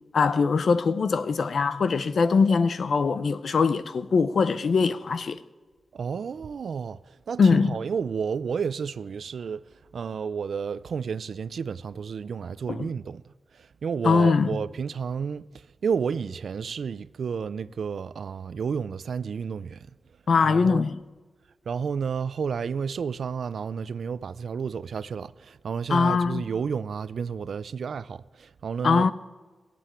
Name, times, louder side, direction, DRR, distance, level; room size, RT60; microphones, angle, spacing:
voice 1, 0.1-5.4 7.4-7.8 12.7-12.9 14.0-14.6 20.3-21.0 25.9-26.5 28.8-29.1, left 5 dB, 60° left, 0.6 m, -22 dB
voice 2, 5.9-7.0 7.3-9.6 9.9-13.2 13.8-15.5 15.8-19.8 20.4-20.8 21.7-29.1, right 6 dB, 75° right, 0.4 m, -31 dB
20.0 x 7.7 x 8.3 m
wide cardioid pair, 170°, 0 cm